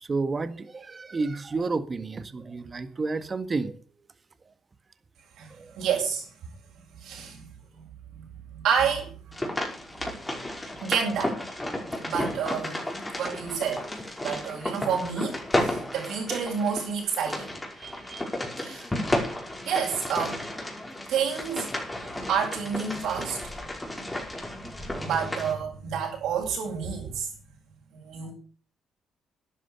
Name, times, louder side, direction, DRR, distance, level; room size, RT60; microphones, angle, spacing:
voice 1, 0.0-3.8 5.6-5.8, right 3 dB, 30° right, 1.6 m, -30 dB
voice 2, 5.7-6.5 6.9-9.2 10.8-11.4 12.0-12.9 13.2-13.9 14.2-18.2 18.6-18.9 19.6-20.5 21.1-21.8 22.1-23.5 24.4-27.3 27.9-28.3, right 7 dB, 80° right, 7.8 m, -30 dB
sound 1, 9.3-25.5, left 1 dB, 15° left, 5.4 m, -33 dB
12.0 x 10.5 x 6.8 m
cardioid pair, 90°, 0 cm